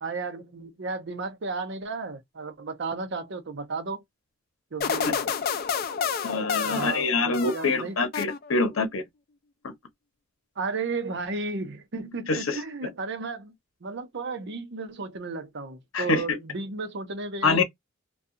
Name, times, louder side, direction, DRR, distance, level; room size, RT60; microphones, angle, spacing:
voice 1, 0.0-4.0 4.7-5.2 6.6-8.0 10.6-13.5 13.8-17.6, right 3 dB, 60° right, 0.7 m, -34 dB
sound 1, 4.8-7.8 8.1-8.8, left 7 dB, 50° left, 0.4 m, -29 dB
voice 2, 6.2-9.0 9.6-9.7 12.3-12.6 15.9-16.2 17.4-17.6, left 3 dB, 85° left, 0.7 m, -25 dB
2.7 x 2.3 x 2.5 m
head